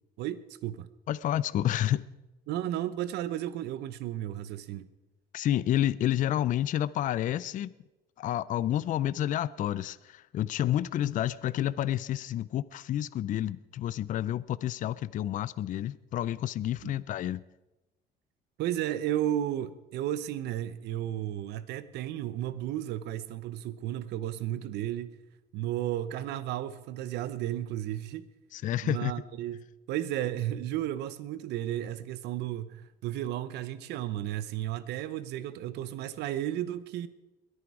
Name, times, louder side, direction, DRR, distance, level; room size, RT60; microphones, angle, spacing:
voice 1, 0.2-0.9 2.5-4.9 16.8-16.9 18.6-25.1 25.5-28.2 28.8-37.1, right 12 dB, 80° right, 0.9 m, -33 dB
voice 2, 1.1-2.0 5.3-7.7 8.2-17.4 28.5-29.1, left 12 dB, 50° left, 0.4 m, -29 dB
21.5 x 9.9 x 4.8 m
cardioid pair, 110°, 17 cm